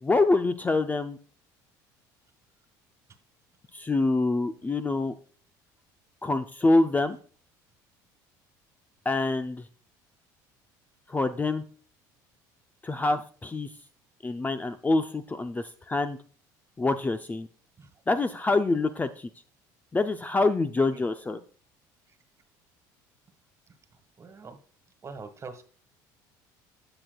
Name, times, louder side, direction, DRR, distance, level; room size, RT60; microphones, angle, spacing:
voice 1, 0.0-1.2 3.7-5.1 6.2-7.2 9.1-9.6 11.1-11.6 12.8-13.7 14.2-16.2 16.8-17.5 18.1-19.3 19.9-21.4, left 2 dB, 20° left, 9 dB, 0.5 m, -26 dB
voice 2, 24.2-24.6 25.0-25.6, right 4 dB, 30° right, 9 dB, 1.6 m, -44 dB
16.5 x 6.0 x 2.3 m, 0.41 s
supercardioid pair, 85°, 9 cm